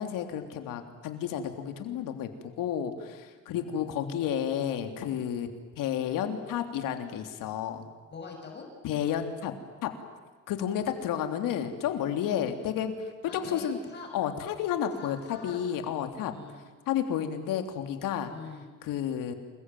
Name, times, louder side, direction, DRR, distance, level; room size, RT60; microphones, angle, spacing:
voice 1, 0.0-2.3 2.6-5.5 5.8-7.9 8.8-9.5 9.8-9.9 10.5-12.9 13.3-13.8 14.1-16.3 16.9-18.3 18.8-19.3, left 9 dB, 90° left, 6 dB, 3.4 m, -31 dB
voice 2, 3.5-4.3 8.1-8.7 13.3-14.1 15.0-16.6 18.3-18.6, left 4 dB, 35° left, 1 dB, 6.2 m, -45 dB
28.0 x 22.5 x 9.3 m, 1.4 s
cardioid pair, 140°, 32 cm